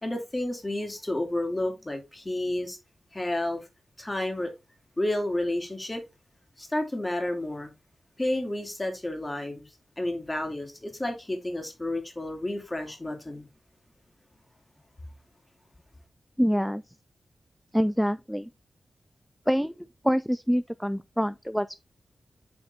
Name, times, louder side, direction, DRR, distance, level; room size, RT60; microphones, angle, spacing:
voice 1, 0.0-2.8 3.1-3.7 4.0-4.5 5.0-6.0 6.6-7.7 8.2-9.7 10.0-13.5, left 1 dB, 20° left, 2.4 m, -31 dB
voice 2, 16.4-16.8 17.7-18.5 19.5-19.7 20.0-21.7, equal, ahead, 0.3 m, -25 dB
8.0 x 4.3 x 3.3 m
cardioid pair, 70°, 0 cm